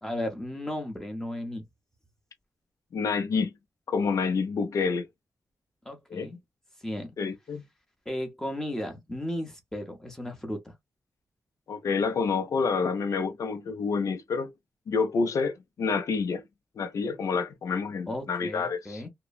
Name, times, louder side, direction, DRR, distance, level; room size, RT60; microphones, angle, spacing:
voice 1, 0.0-1.6 5.8-6.4 6.8-7.1 8.1-10.7 18.1-19.1, left 1 dB, 10° left, 0.8 m, -35 dB
voice 2, 2.9-3.5 3.9-5.1 6.1-6.3 7.2-7.6 11.7-14.5 14.9-16.4 16.8-19.0, left 5 dB, 65° left, 0.6 m, -28 dB
2.9 x 2.1 x 2.3 m
wide cardioid pair, 150°, 6 cm